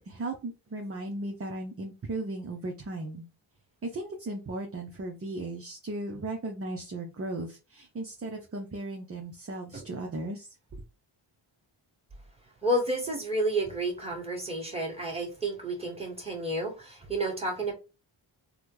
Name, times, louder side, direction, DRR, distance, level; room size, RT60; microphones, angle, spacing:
voice 1, 0.1-3.3 3.8-10.8, right 2 dB, 30° right, 0.6 m, -36 dB
voice 2, 12.6-17.7, right 1 dB, 10° right, 1.7 m, -30 dB
3.5 x 2.2 x 3.0 m
cardioid pair, 65°, 49 cm